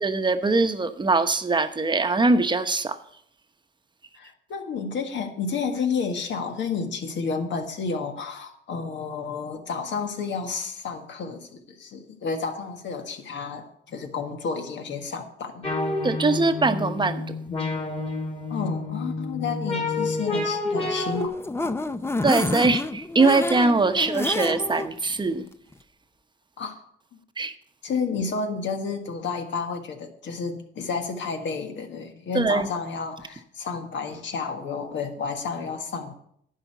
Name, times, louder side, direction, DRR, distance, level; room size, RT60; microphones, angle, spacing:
voice 1, 0.0-3.0 16.0-17.4 22.2-25.4 27.4-27.5 32.3-32.7, right 3 dB, 25° right, 9 dB, 0.9 m, -22 dB
voice 2, 4.1-15.7 18.5-21.3 21.6-21.7 24.0-24.1 26.6-26.8 27.8-36.2, left 5 dB, 70° left, 5 dB, 1.6 m, -31 dB
sound 1, 15.6-21.3, left 2 dB, 30° left, 2.7 m, -29 dB
sound 2, 20.9-24.9 25.3-25.4 25.7-25.8, left 2 dB, 10° left, 0.5 m, -29 dB
11.0 x 5.0 x 8.3 m, 0.69 s
cardioid pair, 90°, 20 cm